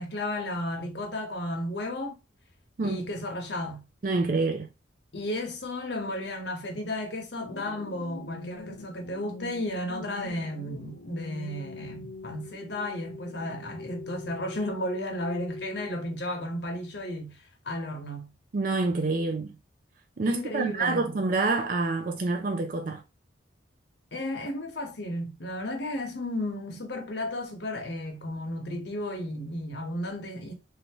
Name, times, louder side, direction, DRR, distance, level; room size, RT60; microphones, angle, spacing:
voice 1, 0.0-2.2 2.8-3.8 5.1-17.4 17.6-18.3 20.3-21.1 24.1-30.5, left 1 dB, 60° left, 1.0 m, -33 dB
voice 2, 4.0-4.7 18.5-19.5 20.2-23.0, right 3 dB, 45° right, 0.4 m, -27 dB
sound 1, 7.4-16.4, left 3 dB, 80° left, 0.5 m, -43 dB
3.3 x 2.7 x 2.9 m
head